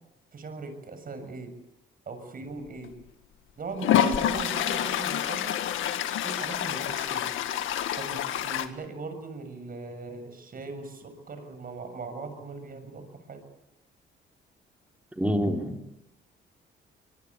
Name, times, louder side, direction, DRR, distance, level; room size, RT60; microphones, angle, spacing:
voice 1, 0.3-1.6 2.1-2.9 3.6-5.6 6.2-7.3 8.0-13.4, right 3 dB, 45° right, 9 dB, 7.1 m, -39 dB
Toilet flush, 2.8-2.9 3.8-8.7, left 10 dB, 85° left, 1.9 m, -27 dB
voice 2, 15.2-15.9, equal, 5° right, 3 dB, 3.9 m, -27 dB
24.5 x 22.5 x 8.3 m, 0.88 s
cardioid pair, 90°, 20 cm